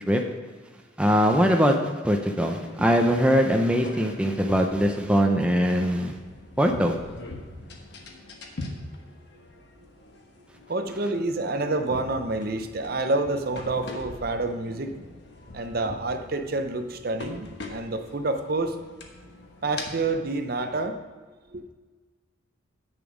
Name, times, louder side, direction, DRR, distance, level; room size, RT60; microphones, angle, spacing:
voice 1, 1.0-1.8 2.0-6.2 6.6-7.0, equal, 5° right, 2 dB, 0.5 m, -21 dB
sound 1, 2.4-20.9, left 2 dB, 55° left, 1.2 m, -43 dB
voice 2, 10.7-14.9 15.5-18.8 19.6-21.0 21.5-21.6, right 2 dB, 50° right, 7 dB, 0.6 m, -28 dB
9.0 x 6.9 x 5.0 m, 1.4 s
head